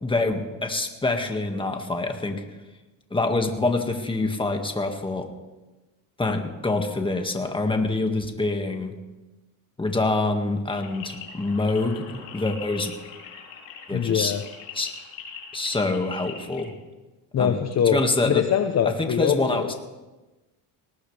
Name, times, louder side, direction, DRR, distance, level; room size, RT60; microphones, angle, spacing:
voice 1, 0.0-2.4 3.1-5.3 6.2-8.9 9.8-12.9 13.9-14.3 14.7-14.9 15.5-16.7 17.4-17.6 17.9-18.5 19.0-19.7, left 2 dB, 10° left, 4 dB, 1.9 m, -25 dB
sound 1, 10.8-16.7, left 6 dB, 75° left, 4.1 m, -42 dB
voice 2, 13.9-14.4 17.3-19.7, left 9 dB, 35° left, 8 dB, 0.9 m, -23 dB
19.5 x 19.0 x 3.4 m, 1.1 s
cardioid pair, 115°, 45 cm